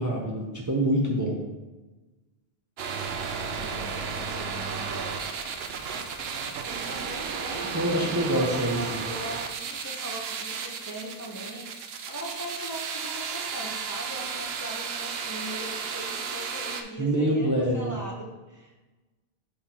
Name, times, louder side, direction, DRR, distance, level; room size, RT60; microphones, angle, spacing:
voice 1, 0.0-1.4 7.7-9.0 17.0-18.0, right 1 dB, 20° right, -2 dB, 0.7 m, -25 dB
sound 1, 2.8-16.8, right 5 dB, 75° right, 0.8 m, -33 dB
voice 2, 3.6-5.2 6.6-18.8, equal, 20° left, -3 dB, 0.8 m, -40 dB
5.6 x 3.3 x 5.6 m, 1.2 s
omnidirectional pair, 1.0 m